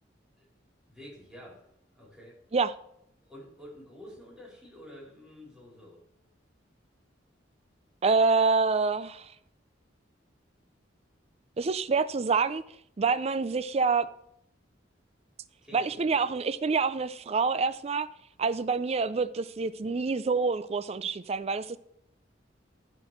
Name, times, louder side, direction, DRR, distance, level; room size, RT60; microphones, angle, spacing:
voice 1, 0.9-1.7 1.9-2.4 3.2-6.0 15.6-16.3, equal, 5° right, 3.3 m, -49 dB
voice 2, 8.0-9.3 11.6-12.6 13.0-14.1 15.7-18.1 18.4-21.8, right 4 dB, 35° right, 0.4 m, -27 dB
11.0 x 4.5 x 6.6 m
head